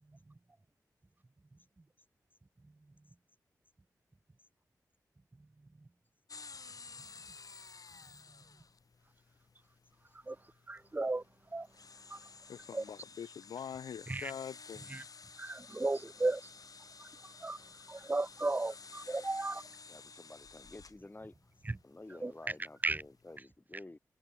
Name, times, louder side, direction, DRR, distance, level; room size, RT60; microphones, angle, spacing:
sound 1, 6.3-23.4, left 4 dB, 55° left, 1.5 m, -54 dB
voice 1, 10.7-11.2 11.5-11.7 12.1-12.2 12.7-12.8 14.1-14.3 14.9-15.0 15.4-16.4 17.0-17.1 17.4-17.6 17.9-19.6 22.2-22.3 22.8-23.0, right 2 dB, 25° right, 0.5 m, -34 dB
voice 2, 12.5-14.9, left 8 dB, 85° left, 0.5 m, -44 dB
voice 3, 19.8-21.5 21.8-24.0, left 2 dB, 25° left, 5.8 m, -51 dB
cardioid pair, 45°, 7 cm